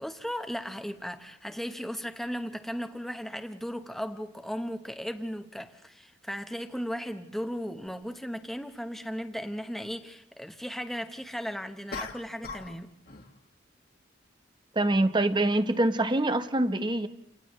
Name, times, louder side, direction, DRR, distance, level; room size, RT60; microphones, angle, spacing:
voice 1, 0.0-12.9, equal, ahead, 1.1 m, -36 dB
sound 1, 11.9-12.8 13.1-13.4, left 4 dB, 50° left, 1.9 m, -39 dB
voice 2, 14.7-17.1, right 1 dB, 25° right, 0.9 m, -25 dB
29.5 x 28.5 x 3.2 m
head